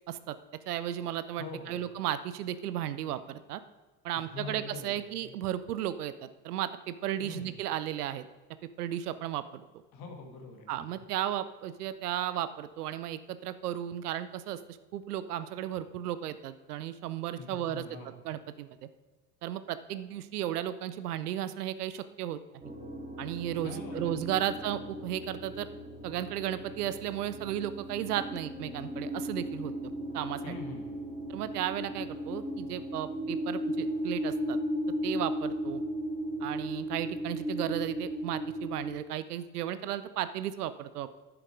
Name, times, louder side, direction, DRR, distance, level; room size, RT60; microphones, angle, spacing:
voice 1, 0.7-3.6 4.0-8.3 8.8-9.6 10.7-17.8 18.2-18.7 19.4-22.4 23.2-25.7 26.0-30.5 31.3-34.6 35.0-35.8 36.4-41.1, right 11 dB, 65° right, 14 dB, 0.7 m, -34 dB
voice 2, 1.4-1.9 4.3-5.1 7.2-7.5 9.9-11.0 17.4-18.2 23.6-24.5 30.4-31.1, left 3 dB, 45° left, 3 dB, 2.2 m, -44 dB
sound 1, 22.6-38.9, equal, 15° right, 3.4 m, -36 dB
10.5 x 7.1 x 4.9 m, 1.3 s
figure-of-eight pair, 65°, 50 cm